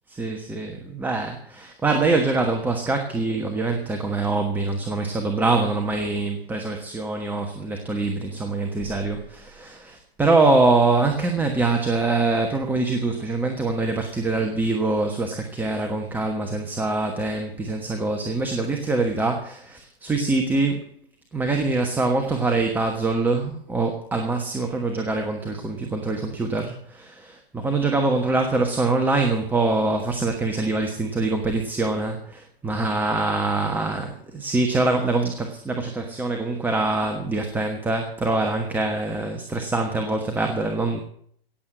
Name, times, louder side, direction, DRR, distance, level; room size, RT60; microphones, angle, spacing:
voice 1, 0.1-20.9 21.3-41.0, right 3 dB, 5° right, 3 dB, 1.3 m, -24 dB
17.5 x 7.9 x 7.6 m, 0.63 s
hypercardioid pair, 135°, 31 cm